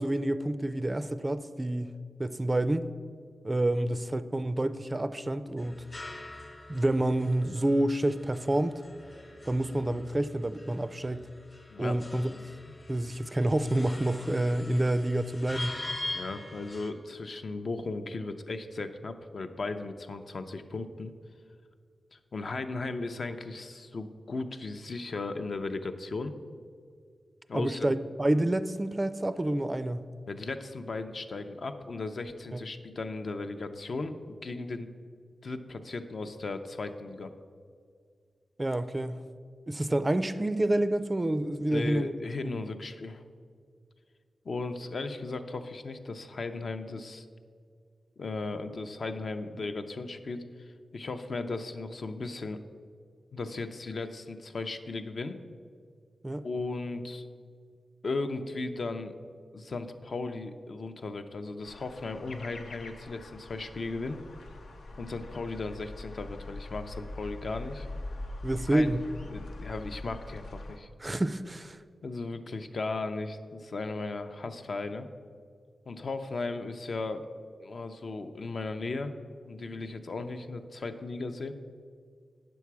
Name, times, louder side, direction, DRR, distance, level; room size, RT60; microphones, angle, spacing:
voice 1, 0.0-1.9 2.2-2.9 3.4-5.8 6.7-8.8 9.5-11.3 11.8-12.3 12.9-15.7 27.5-30.0 32.5-32.6 38.6-39.2 39.7-42.1 42.4-42.5 56.2-56.4 68.4-69.0 71.0-71.8, right 1 dB, 20° right, 12 dB, 0.3 m, -28 dB
sound 1, 5.6-16.9, left 2 dB, 35° left, 1.0 m, -43 dB
voice 2, 16.1-21.1 22.1-26.3 27.5-27.9 30.3-34.9 35.4-37.3 41.7-43.2 44.4-47.3 48.2-52.6 53.3-55.4 56.4-57.3 58.0-59.1 59.5-64.2 65.0-67.9 68.7-69.0 69.3-70.9 72.0-75.1 75.9-77.2 77.6-79.1 79.4-81.5, left 3 dB, 55° left, 8 dB, 0.5 m, -36 dB
sound 2, 61.6-70.8, left 2 dB, 85° left, 0.8 m, -43 dB
9.2 x 7.1 x 4.7 m, 2.1 s
wide cardioid pair, 105°, 0 cm